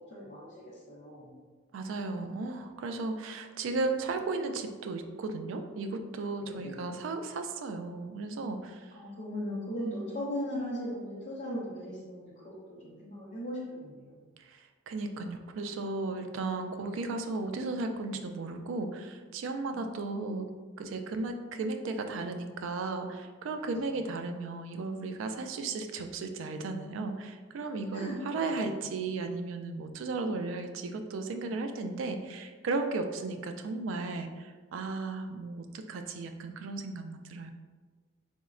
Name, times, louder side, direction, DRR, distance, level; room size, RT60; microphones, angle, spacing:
voice 1, 0.0-1.4 6.4-6.9 8.9-14.3 19.7-20.1 23.5-24.0 27.9-28.8, equal, 40° left, -9 dB, 0.6 m, -39 dB
voice 2, 1.7-8.9 9.8-10.1 14.4-20.5 20.8-37.5, right 3 dB, 75° right, 7 dB, 0.3 m, -35 dB
3.9 x 2.1 x 2.4 m, 1.4 s
head